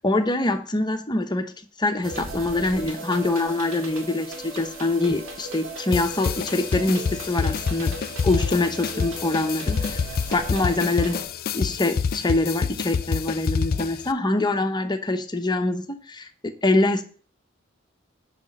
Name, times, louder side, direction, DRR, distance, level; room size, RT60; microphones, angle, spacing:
voice 1, 0.0-1.5 1.8-7.9 8.2-11.2 11.5-17.0, left 2 dB, 20° left, 7 dB, 0.8 m, -24 dB
sound 1, 2.0-11.2, right 2 dB, 85° right, 2.1 m, -37 dB
sound 2, 5.9-14.1, left 6 dB, 50° left, 0.4 m, -27 dB
6.2 x 5.0 x 6.4 m, 0.42 s
head